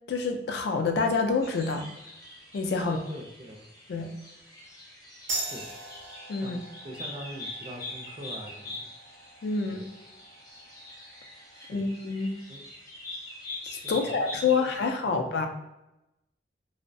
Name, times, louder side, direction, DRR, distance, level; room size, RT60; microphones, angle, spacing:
voice 1, 0.1-1.9 2.5-3.0 3.9-4.1 6.3-6.6 9.4-9.8 11.7-12.3 13.6-15.5, left 4 dB, 65° left, 4 dB, 0.3 m, -27 dB
sound 1, 1.4-14.9, left 1 dB, 20° left, 0.6 m, -44 dB
voice 2, 2.8-3.6 5.3-5.7 6.4-6.6 6.8-8.9 9.7-9.9 11.5-11.8 12.5-12.6 13.8-14.6 15.0-15.2, equal, 30° right, 1 dB, 0.3 m, -42 dB
sound 2, 5.3-12.4, right 2 dB, 85° right, 0.7 m, -42 dB
2.5 x 2.0 x 2.5 m, 0.92 s
head